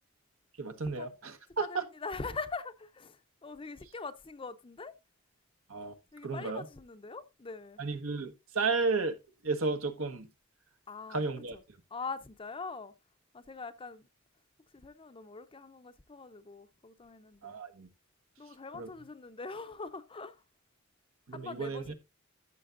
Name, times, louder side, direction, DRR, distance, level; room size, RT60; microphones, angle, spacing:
voice 1, 0.6-1.8 5.7-5.9 6.2-6.7 7.8-9.2 9.4-10.3 11.1-11.6 17.4-17.9 18.7-18.9 21.3-21.9, right 4 dB, 80° right, 1.3 m, -33 dB
voice 2, 1.6-4.9 6.1-7.8 10.9-11.2 11.5-11.6 11.9-12.9 13.3-14.1 14.7-17.6 18.4-20.4 21.3-21.9, left 4 dB, 25° left, 0.6 m, -43 dB
14.0 x 6.9 x 2.5 m
head